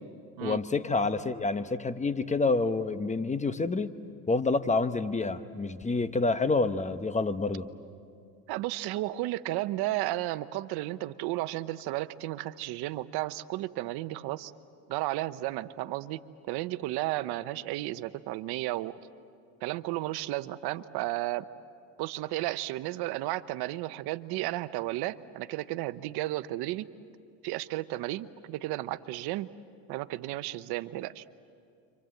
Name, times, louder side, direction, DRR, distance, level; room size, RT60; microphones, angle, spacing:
voice 1, 0.4-3.9 4.3-7.7, left 3 dB, 15° left, 11 dB, 1.0 m, -28 dB
voice 2, 8.5-14.5 14.9-16.2 16.5-18.9 19.6-21.5 22.0-26.9 27.4-29.5 29.9-31.2, right 16 dB, 70° right, 14 dB, 0.9 m, -33 dB
30.0 x 25.5 x 7.8 m, 2.4 s
supercardioid pair, 100°, 41 cm